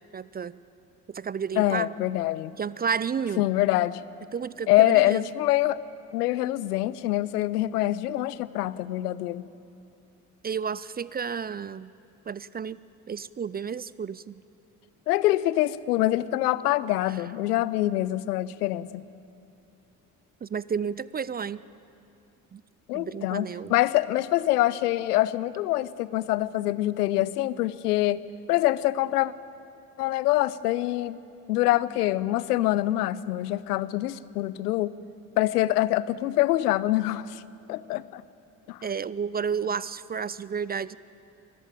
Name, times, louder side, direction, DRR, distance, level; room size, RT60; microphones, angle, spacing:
voice 1, 0.1-0.6 1.1-1.9 2.6-3.4 4.3-5.3 10.4-11.9 12.3-12.8 13.1-14.3 17.1-17.2 20.4-21.6 22.5-22.6 22.9-23.7 38.8-41.0, right 6 dB, 20° right, 19 dB, 0.4 m, -31 dB
voice 2, 1.6-2.5 3.4-4.0 4.7-5.8 6.1-9.5 15.1-19.0 22.9-28.2 28.5-29.3 30.0-31.2 31.5-34.9 35.4-37.4 37.7-38.2 38.7-38.8, left 16 dB, 85° left, 19 dB, 0.6 m, -25 dB
23.5 x 13.5 x 9.0 m, 2.6 s
hypercardioid pair, 50°, 46 cm